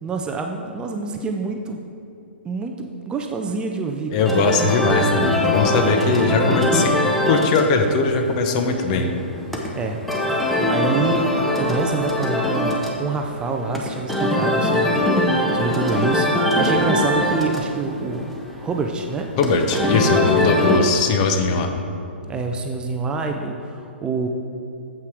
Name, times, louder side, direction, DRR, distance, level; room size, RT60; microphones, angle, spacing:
voice 1, 0.0-1.8 2.4-4.4 9.7-10.0 10.3-11.3 11.6-19.3 19.9-20.0 22.3-24.3, right 4 dB, 15° right, 3 dB, 0.4 m, -27 dB
voice 2, 4.1-7.0 7.3-9.1 19.4-21.7, left 3 dB, 35° left, 5 dB, 0.7 m, -20 dB
sound 1, 4.2-20.8, left 1 dB, 5° left, 0.8 m, -22 dB
7.6 x 5.6 x 4.7 m, 2.6 s
figure-of-eight pair, 120°, 6 cm